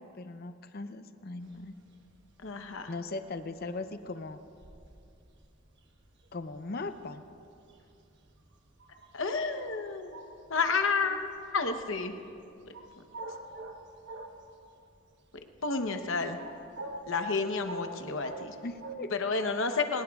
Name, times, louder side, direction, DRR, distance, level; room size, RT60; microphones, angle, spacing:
voice 1, 0.0-1.7 2.9-4.4 6.3-7.2 18.6-19.1, left 3 dB, 45° left, 9 dB, 0.6 m, -39 dB
sound 1, 1.4-14.9 15.2-19.0, right 2 dB, 55° right, 1.2 m, -46 dB
voice 2, 2.4-2.9 9.1-10.2 10.5-11.2 11.5-12.1 15.6-16.4 17.1-18.6 19.2-20.0, left 4 dB, 65° left, 6 dB, 0.9 m, -30 dB
23.0 x 20.0 x 2.4 m, 2.6 s
head